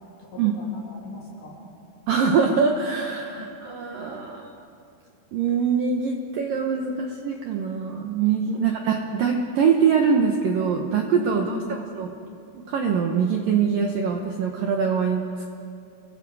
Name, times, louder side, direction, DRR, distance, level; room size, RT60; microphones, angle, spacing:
voice 1, 0.2-1.7 3.4-3.5 8.5-8.8 11.3-11.8, left 2 dB, 55° left, -5 dB, 4.2 m, -38 dB
voice 2, 2.1-4.5 5.3-11.6 11.9-12.1 12.7-15.5, right 6 dB, 85° right, 2 dB, 1.9 m, -23 dB
29.5 x 23.0 x 4.9 m, 2.7 s
omnidirectional pair, 5.9 m